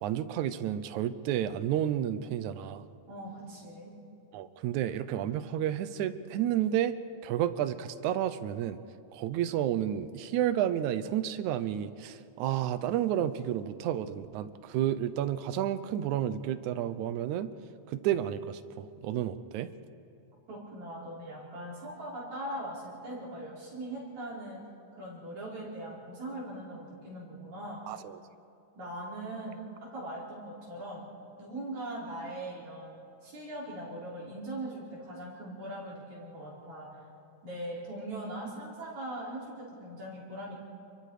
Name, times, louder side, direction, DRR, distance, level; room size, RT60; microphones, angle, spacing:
voice 1, 0.0-2.9 4.3-7.0 7.2-8.8 9.1-17.5 17.9-19.7 27.9-28.2, right 11 dB, 90° right, 13 dB, 2.2 m, -31 dB
voice 2, 3.1-3.9 20.5-24.6 24.9-27.8 28.7-31.0 31.4-37.0 37.4-40.5, right 1 dB, 75° right, -6 dB, 6.5 m, -40 dB
29.5 x 23.0 x 5.0 m, 2.6 s
omnidirectional pair, 3.3 m